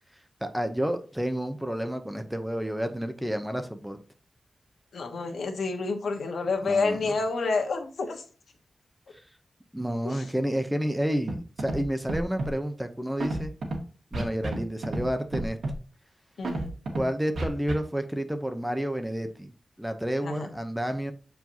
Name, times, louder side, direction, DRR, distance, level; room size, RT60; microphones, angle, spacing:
voice 1, 0.4-4.0 6.6-7.1 9.7-13.5 14.1-15.6 16.9-19.5 19.8-21.1, equal, 5° right, 7 dB, 0.7 m, -30 dB
voice 2, 4.9-8.2 10.0-10.2 16.4-16.7 20.2-20.5, left 3 dB, 85° left, 4 dB, 1.3 m, -29 dB
Scratching (performance technique), 11.3-11.4 11.6-11.8 12.1-12.5 13.2-13.8 14.1-14.6 14.8-15.1 15.3-15.7 16.4-17.0 17.4-17.7, right 2 dB, 80° right, 1.8 m, -30 dB
7.6 x 4.6 x 2.8 m, 0.38 s
wide cardioid pair, 130°, 0 cm